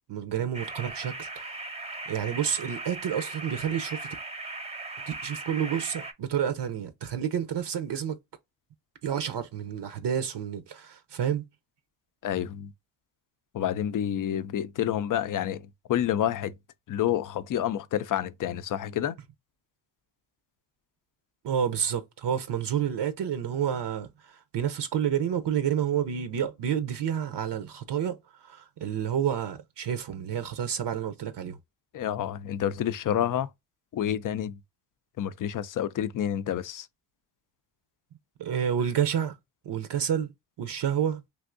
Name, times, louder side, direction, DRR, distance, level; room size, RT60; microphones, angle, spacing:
voice 1, 0.1-1.6 2.1-4.1 5.1-8.2 9.0-11.4 21.4-24.1 24.5-28.2 28.4-31.6 38.4-39.3 39.6-40.3 40.6-41.2, right 9 dB, 65° right, 0.7 m, -29 dB
sound 1, 0.5-6.1, right 3 dB, 15° right, 0.6 m, -38 dB
voice 2, 12.2-12.7 13.5-16.5 16.9-19.2 31.9-33.5 33.9-34.6 35.2-36.9, left 10 dB, 45° left, 0.4 m, -29 dB
3.4 x 2.6 x 2.5 m
supercardioid pair, 45°, 45 cm